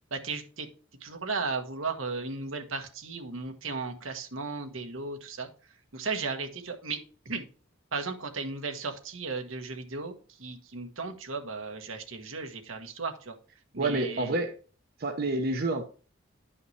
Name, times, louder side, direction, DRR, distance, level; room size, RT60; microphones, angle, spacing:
voice 1, 0.1-0.7 1.0-5.5 5.9-7.0 7.2-7.4 7.9-13.3 13.7-14.4, right 4 dB, 75° right, 6 dB, 1.3 m, -35 dB
voice 2, 13.8-14.5 15.0-15.8, right 2 dB, 50° right, 4 dB, 0.9 m, -28 dB
11.0 x 5.7 x 3.3 m, 0.38 s
head